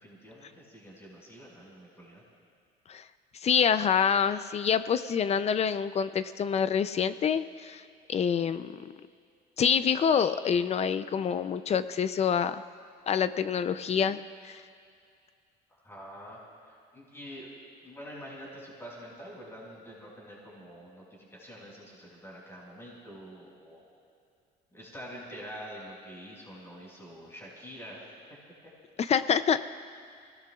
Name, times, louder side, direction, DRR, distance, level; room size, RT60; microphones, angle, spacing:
voice 1, 0.0-2.2 15.8-17.5 17.8-21.0 21.3-23.9 24.7-28.1, equal, 15° left, -4 dB, 5.0 m, -46 dB
voice 2, 3.4-7.8 8.1-8.9 9.6-12.6 13.1-14.6 29.0-29.6, left 7 dB, 40° left, 13 dB, 0.5 m, -26 dB
27.0 x 18.0 x 2.4 m, 2.4 s
cardioid pair, 110°, 17 cm